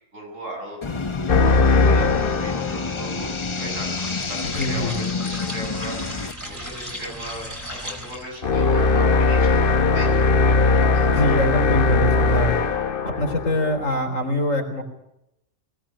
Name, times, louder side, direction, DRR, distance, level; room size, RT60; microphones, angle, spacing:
voice 1, 0.1-11.6, right 1 dB, 85° right, 1 dB, 7.3 m, -38 dB
sound 1, 0.8-6.3, left 4 dB, 25° left, 0.8 m, -28 dB
sound 2, 1.3-3.3 8.4-14.1, left 3 dB, 45° left, 1.1 m, -19 dB
sound 3, 3.8-8.4, equal, 15° right, 4.4 m, -36 dB
voice 2, 4.4-5.0 11.1-12.6 13.2-14.8, left 1 dB, 80° left, 4 dB, 4.4 m, -24 dB
21.0 x 17.5 x 8.7 m, 0.83 s
omnidirectional pair, 1.3 m